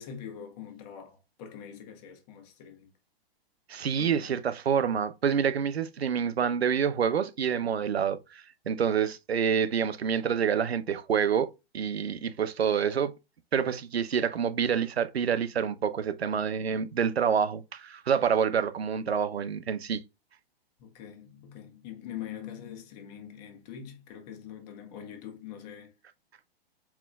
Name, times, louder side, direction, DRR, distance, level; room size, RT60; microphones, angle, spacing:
voice 1, 0.0-2.9 4.0-4.4 20.8-25.9, left 9 dB, 40° left, 1.5 m, -44 dB
voice 2, 3.7-11.5 11.7-13.1 13.5-20.0, right 7 dB, 85° right, 0.7 m, -27 dB
4.6 x 3.7 x 2.3 m
hypercardioid pair, 120°, 30 cm